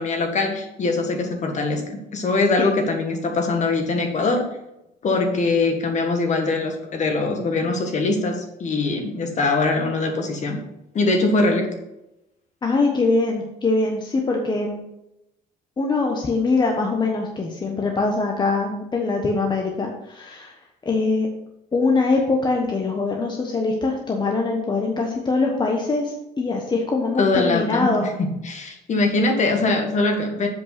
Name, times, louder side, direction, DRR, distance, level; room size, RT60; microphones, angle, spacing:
voice 1, 0.0-4.5 5.0-10.6 10.9-11.7 27.2-30.5, left 3 dB, 45° left, 4 dB, 1.8 m, -22 dB
voice 2, 12.6-14.8 15.8-20.5 20.8-21.3 21.7-28.1, left 3 dB, 25° left, 1 dB, 1.2 m, -23 dB
7.7 x 5.3 x 6.0 m, 0.89 s
cardioid pair, 110°, 17 cm